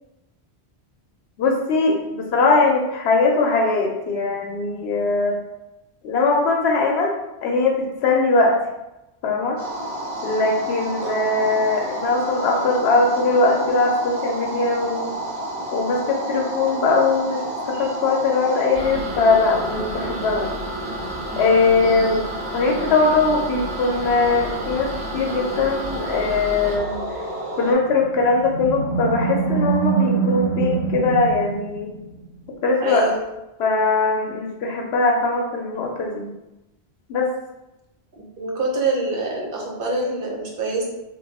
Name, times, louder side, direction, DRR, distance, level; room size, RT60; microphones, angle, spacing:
voice 1, 1.4-5.4 6.0-7.1 7.4-7.8 8.0-8.5 9.2-9.6 10.2-15.1 15.7-17.4 17.7-20.5 21.4-22.2 22.5-27.0 27.6-31.9 32.6-33.1 33.6-36.3 37.1-37.3, left 3 dB, 80° left, 0 dB, 0.8 m, -20 dB
sound 1, 9.6-27.7, right 1 dB, 35° right, 1.0 m, -30 dB
voice 2, 11.0-11.4 21.8-22.2 32.8-33.2 38.1-40.9, right 2 dB, 60° right, -2 dB, 0.8 m, -26 dB
Animal, 27.8-32.2, right 5 dB, 20° left, 1.0 m, -24 dB
2.9 x 2.1 x 3.9 m, 0.95 s
omnidirectional pair, 1.1 m